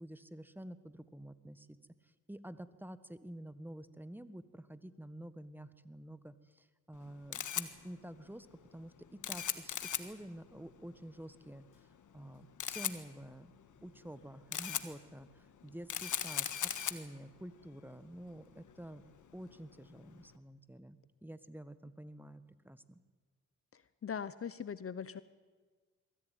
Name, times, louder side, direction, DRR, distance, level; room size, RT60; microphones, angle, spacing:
voice 1, 0.0-1.8 2.0-11.6 12.1-13.5 13.8-19.0 19.3-23.0, right 1 dB, 5° right, 13 dB, 1.5 m, -49 dB
Camera, 6.9-20.3, left 9 dB, 65° left, 1.5 m, -41 dB
voice 2, 24.0-25.2, left 7 dB, 45° left, 16 dB, 0.9 m, -40 dB
22.5 x 15.0 x 9.3 m, 1.4 s
supercardioid pair, 50°, 33 cm